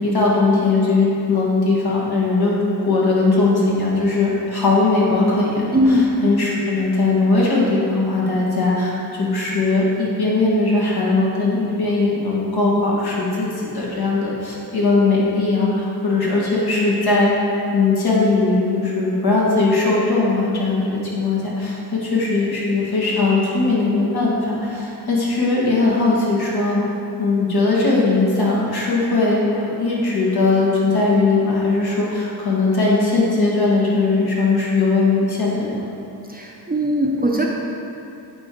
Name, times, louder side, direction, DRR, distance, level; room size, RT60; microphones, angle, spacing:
voice 1, 0.0-2.6 2.9-17.3 17.7-26.8 27.2-35.8, left 3 dB, 65° left, -5 dB, 1.5 m, -19 dB
voice 2, 5.7-6.2 36.3-37.5, equal, 20° right, -2 dB, 0.6 m, -19 dB
8.7 x 3.5 x 3.8 m, 2.7 s
wide cardioid pair, 80°, 40 cm